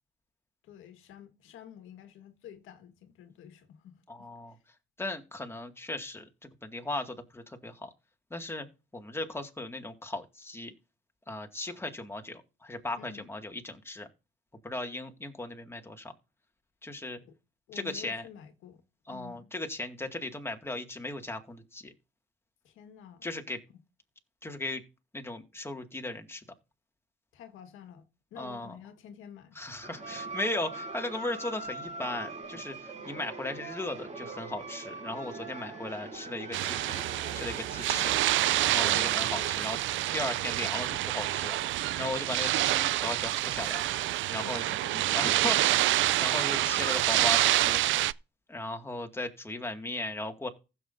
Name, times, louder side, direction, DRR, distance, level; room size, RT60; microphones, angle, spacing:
voice 1, 0.6-4.6 13.0-13.3 17.2-17.3 17.7-18.8 19.1-19.5 22.6-23.3 23.7-23.8 27.3-29.6 32.9-33.2 37.9-38.1 38.9-39.3 44.4-45.2, left 9 dB, 85° left, 1.7 m, -50 dB
voice 2, 4.1-4.6 5.0-7.9 8.3-8.7 8.9-10.7 11.3-14.1 14.6-16.1 16.8-17.2 17.7-18.2 19.1-21.9 23.2-23.6 24.4-24.8 25.1-26.4 28.4-28.8 29.6-37.0 37.4-38.1 38.6-39.8 40.1-43.8 44.3-44.7 45.1-47.8 48.5-50.5, left 2 dB, 10° left, 2.1 m, -37 dB
sound 1, 29.8-39.5, right 3 dB, 35° right, 4.7 m, -42 dB
sound 2, 36.5-48.1, right 15 dB, 75° right, 0.4 m, -27 dB
15.5 x 7.7 x 2.7 m
cardioid pair, 90°, 20 cm